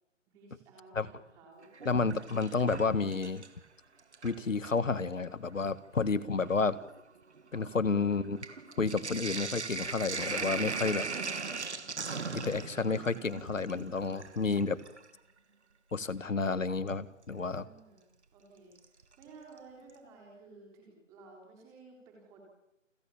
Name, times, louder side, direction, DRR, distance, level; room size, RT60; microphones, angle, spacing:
voice 1, 0.3-1.7 7.7-7.8 14.0-14.6 17.3-18.0 18.3-22.4, right 3 dB, 10° right, -1 dB, 3.8 m, -55 dB
Sink (filling or washing), 1.6-3.7 4.0-4.8 5.6-5.7 6.0-15.1 16.9-17.0 18.8-19.2 19.6-19.7 19.9-20.0, right 4 dB, 60° right, 2.5 m, -39 dB
voice 2, 1.9-3.5 4.2-6.8 7.5-8.4 8.8-11.0 12.3-14.8 15.9-17.7, left 4 dB, 80° left, 15 dB, 1.8 m, -30 dB
29.5 x 16.0 x 8.7 m, 0.86 s
figure-of-eight pair, 170°, 38 cm